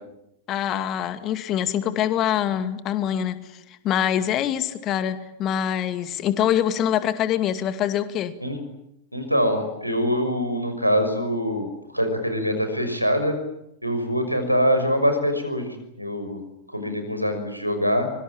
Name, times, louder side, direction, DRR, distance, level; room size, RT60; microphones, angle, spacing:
voice 1, 0.5-3.4 3.8-8.3, left 10 dB, 35° left, 11 dB, 2.4 m, -24 dB
voice 2, 9.1-11.7 11.9-13.3 13.8-16.4 16.7-18.1, equal, 90° right, 8 dB, 6.0 m, -24 dB
25.0 x 24.5 x 9.0 m, 0.81 s
figure-of-eight pair, 90°, 0 cm